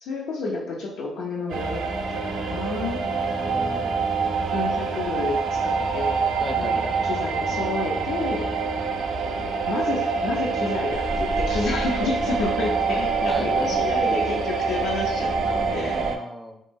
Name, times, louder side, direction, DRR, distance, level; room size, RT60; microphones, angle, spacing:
voice 1, 0.0-1.8 2.1-3.0 4.5-6.2 6.6-8.5 9.7-16.0, left 3 dB, 90° left, -3 dB, 0.4 m, -30 dB
sound 1, 1.5-16.2, right 4 dB, 75° right, 0.3 m, -26 dB
voice 2, 3.1-3.9 6.4-7.0 13.3-13.9 15.9-16.6, equal, 5° left, 4 dB, 0.4 m, -36 dB
sound 2, 10.9-16.1, equal, 60° left, 0.7 m, -36 dB
2.8 x 2.6 x 2.2 m, 0.76 s
cardioid pair, 90°, 0 cm